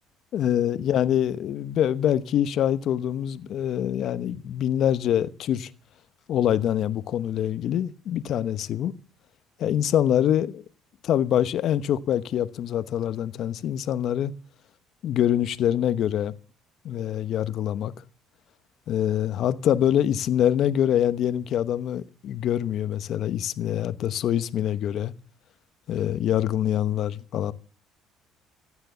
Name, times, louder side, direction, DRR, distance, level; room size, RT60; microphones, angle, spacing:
voice 1, 0.3-5.7 6.3-8.9 9.6-10.6 11.0-14.3 15.0-16.4 16.8-17.9 18.9-25.1 25.9-27.5, left 10 dB, 60° left, 1.0 m, -25 dB
15.5 x 9.5 x 6.8 m
supercardioid pair, 80°, 0 cm